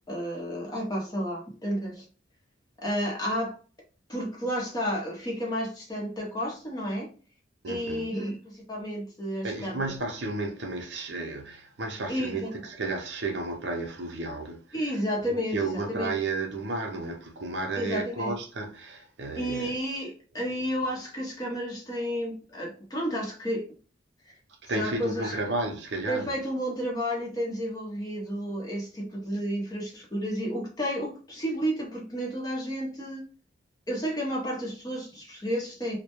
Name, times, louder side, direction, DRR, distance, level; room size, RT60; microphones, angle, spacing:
voice 1, 0.1-2.0 2.8-3.5 4.1-7.1 7.7-9.9 12.1-12.5 14.7-15.6 15.9-16.1 17.7-18.3 19.4-23.7 24.7-25.4 26.1-33.3 33.9-36.0, equal, 20° left, 0.8 m, -31 dB
voice 2, 7.6-8.1 9.4-14.8 15.3-19.8 20.5-20.6 24.6-26.3, right 3 dB, 65° right, 0.6 m, -33 dB
2.2 x 2.1 x 2.9 m
head